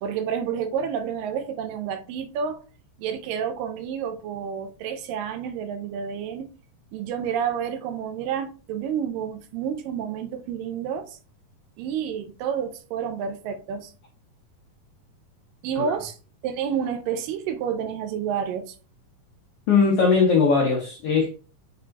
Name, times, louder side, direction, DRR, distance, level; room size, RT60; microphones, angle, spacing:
voice 1, 0.0-2.6 3.0-6.5 6.9-11.2 11.8-13.9 15.6-16.2 16.4-18.8, right 7 dB, 85° right, 2.3 m, -29 dB
voice 2, 19.7-21.3, left 5 dB, 80° left, 1.3 m, -20 dB
6.0 x 3.9 x 2.3 m
omnidirectional pair, 3.9 m